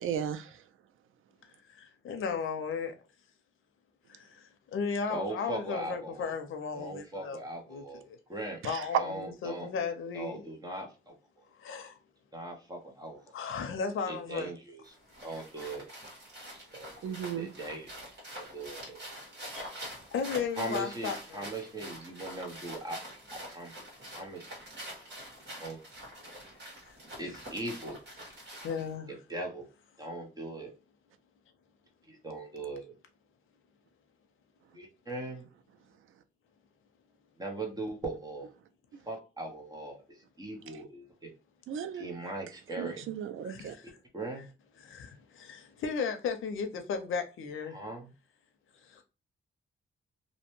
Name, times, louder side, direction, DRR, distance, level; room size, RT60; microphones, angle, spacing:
voice 1, 0.0-0.5 8.6-8.8 17.0-17.5 41.7-42.1 42.8-43.8, right 8 dB, 85° right, 0.4 m, -35 dB
voice 2, 1.7-2.9 4.1-7.4 7.7-8.2 8.6-10.5 11.6-12.0 13.3-14.5 19.5-19.7 20.1-21.4 27.3-27.4 28.6-29.1 43.0-43.1 43.4-44.0 44.8-47.8 48.8-49.0, left 5 dB, 85° left, 0.5 m, -35 dB
voice 3, 5.1-6.3 6.7-8.0 8.3-8.6 9.0-9.7 10.1-11.1 12.3-13.2 14.1-14.9 15.2-15.9 16.7-18.0 18.4-19.0 20.6-23.0 23.3-23.8 24.2-24.5 25.6-25.8 27.2-28.0 29.1-29.7 30.0-30.7 32.1-32.9 34.7-35.5 37.4-38.5 39.1-40.0 40.4-41.3 41.9-43.0 43.8-44.4 47.7-48.1, right 2 dB, 20° right, 0.7 m, -39 dB
sound 1, 14.8-28.9, equal, 60° right, 1.4 m, -45 dB
2.7 x 2.1 x 2.9 m
wide cardioid pair, 130°, 20 cm